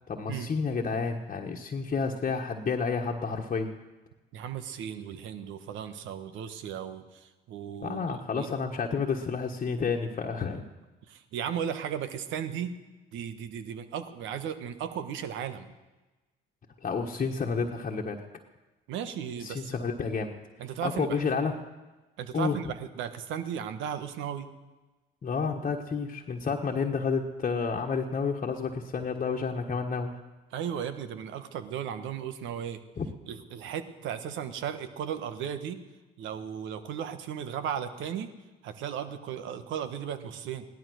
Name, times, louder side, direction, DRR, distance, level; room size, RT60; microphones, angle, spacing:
voice 1, 0.1-3.7 7.8-10.6 16.8-18.2 19.4-20.3 20.8-21.5 22.3-22.6 25.2-30.1 33.0-33.1, left 5 dB, 40° left, 0 dB, 1.5 m, -30 dB
voice 2, 4.3-8.5 11.1-12.7 13.1-15.7 18.9-19.8 20.6-21.3 22.2-24.5 30.5-32.8 33.3-35.8 36.2-38.3 38.6-40.6, right 8 dB, 70° right, 10 dB, 1.4 m, -36 dB
17.0 x 12.0 x 6.4 m, 1.2 s
supercardioid pair, 65°, 20 cm